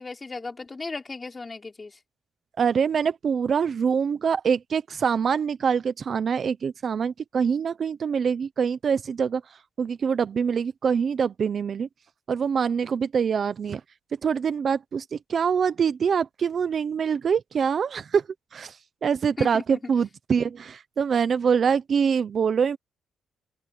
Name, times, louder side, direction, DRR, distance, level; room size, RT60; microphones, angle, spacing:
voice 1, 0.0-2.0 19.4-19.9, left 3 dB, 25° left, 5.9 m, -36 dB
voice 2, 2.6-9.4 9.8-11.9 12.3-13.8 14.2-18.2 18.5-18.8 19.0-22.8, right 6 dB, 50° right, 1.0 m, -24 dB
open air
cardioid pair, 90°, 0 cm